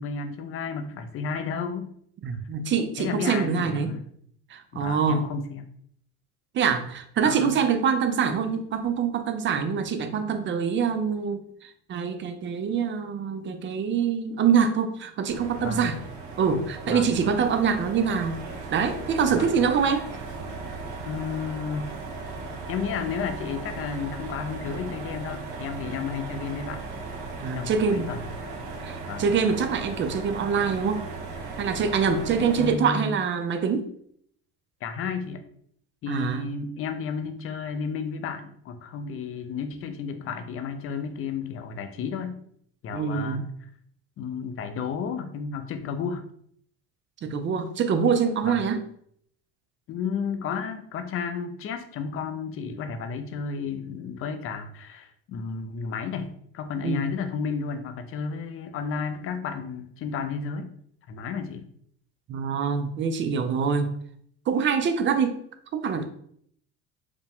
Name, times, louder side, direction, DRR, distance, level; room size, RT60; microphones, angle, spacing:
voice 1, 0.0-1.9 3.0-4.1 4.7-5.7 7.2-7.6 15.6-15.9 16.9-17.3 19.3-19.6 21.0-21.9 22.7-26.8 27.5-28.3 29.1-29.2 32.4-33.2 34.8-35.4 36.0-42.4 42.8-43.4 44.2-46.2 48.4-48.6 49.9-60.7 61.1-61.7, left 5 dB, 45° left, 9 dB, 0.6 m, -32 dB
voice 2, 2.2-3.9 4.5-5.3 6.5-16.0 16.4-18.4 18.7-20.1 27.4-28.1 28.8-31.0 31.6-33.9 36.1-36.5 42.9-43.4 47.2-48.8 56.8-57.1 62.3-63.9 64.5-65.4 65.7-66.0, right 6 dB, 35° right, 9 dB, 0.5 m, -25 dB
sound 1, 15.3-32.7, right 3 dB, 70° right, 1.2 m, -37 dB
4.9 x 2.2 x 3.5 m, 0.65 s
supercardioid pair, 110°, 31 cm